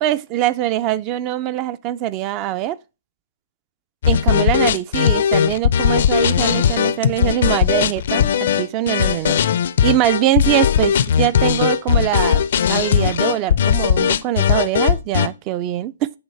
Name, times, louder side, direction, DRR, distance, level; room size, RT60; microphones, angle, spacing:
voice 1, 0.0-2.8 4.1-9.4 9.8-12.4 12.7-16.1, right 13 dB, 30° right, 0.3 m, -22 dB
sound 1, 4.0-15.3, left 8 dB, 55° left, 0.4 m, -18 dB
7.9 x 3.1 x 5.4 m
figure-of-eight pair, 125°, 0 cm